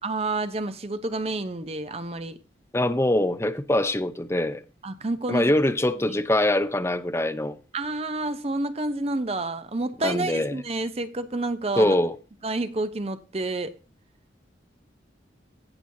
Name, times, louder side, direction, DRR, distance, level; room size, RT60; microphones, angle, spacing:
voice 1, 0.0-2.4 4.8-5.5 6.1-6.5 7.7-11.9 12.4-13.7, right 2 dB, 30° right, 0.6 m, -29 dB
voice 2, 2.7-4.6 5.3-7.6 10.0-10.6 11.8-12.2, left 1 dB, 15° left, 0.5 m, -23 dB
16.5 x 6.1 x 2.7 m
head